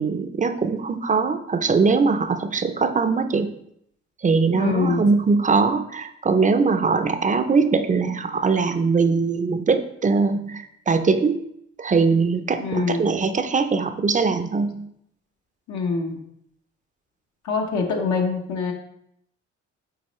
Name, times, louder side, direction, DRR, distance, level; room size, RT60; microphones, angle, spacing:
voice 1, 0.0-3.5 4.2-11.4 11.8-14.8, right 4 dB, 25° right, 9 dB, 0.5 m, -21 dB
voice 2, 4.5-5.0 12.6-13.1 15.7-16.2 17.4-18.7, left 4 dB, 70° left, 1 dB, 1.0 m, -24 dB
7.4 x 4.2 x 3.1 m, 0.73 s
cardioid pair, 90°, 30 cm